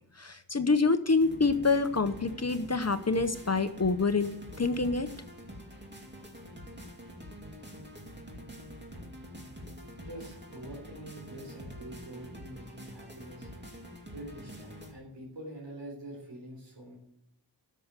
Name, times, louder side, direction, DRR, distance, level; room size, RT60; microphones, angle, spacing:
voice 1, 0.2-5.1, left 3 dB, 35° left, 10 dB, 0.8 m, -27 dB
Spherical Amberpikes, 1.2-14.9, equal, 25° right, 2.4 m, -46 dB
voice 2, 10.0-13.5 14.1-17.0, right 1 dB, 90° right, -3 dB, 3.8 m, -45 dB
13.0 x 6.7 x 8.2 m, 0.75 s
wide cardioid pair, 55°, 43 cm